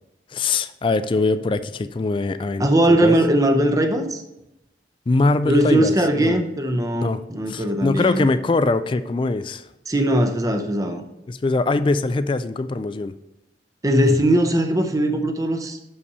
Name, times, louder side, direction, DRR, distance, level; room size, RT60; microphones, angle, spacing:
voice 1, 0.3-3.2 5.1-6.4 6.9-9.7 11.3-13.1, left 3 dB, 30° left, 13 dB, 0.3 m, -22 dB
voice 2, 2.6-4.2 5.5-8.3 9.9-11.0 13.8-15.9, right 1 dB, 20° right, 5 dB, 0.6 m, -20 dB
6.7 x 5.6 x 5.4 m, 0.91 s
head